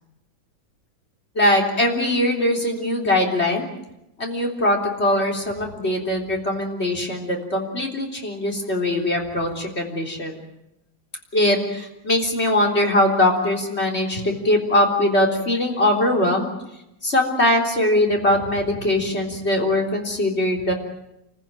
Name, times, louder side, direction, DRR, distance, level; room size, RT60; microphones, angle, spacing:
voice 1, 1.4-3.7 4.2-10.4 11.3-16.5 17.0-20.7, left 1 dB, 30° left, 1 dB, 3.8 m, -21 dB
29.0 x 15.0 x 9.1 m, 0.86 s
omnidirectional pair, 2.1 m